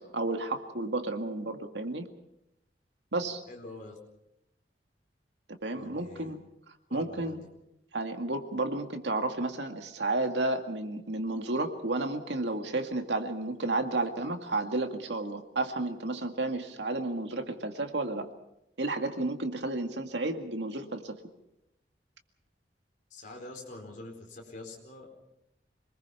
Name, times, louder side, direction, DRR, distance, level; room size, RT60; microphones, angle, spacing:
voice 1, 0.0-2.1 3.1-3.4 5.6-6.4 6.9-7.4 7.9-18.3 18.8-21.1, right 2 dB, 80° right, 6 dB, 2.1 m, -32 dB
voice 2, 3.5-4.0 5.7-6.3 6.9-7.4 23.1-25.2, left 2 dB, 45° left, 0 dB, 4.5 m, -45 dB
27.0 x 20.5 x 5.7 m, 0.84 s
head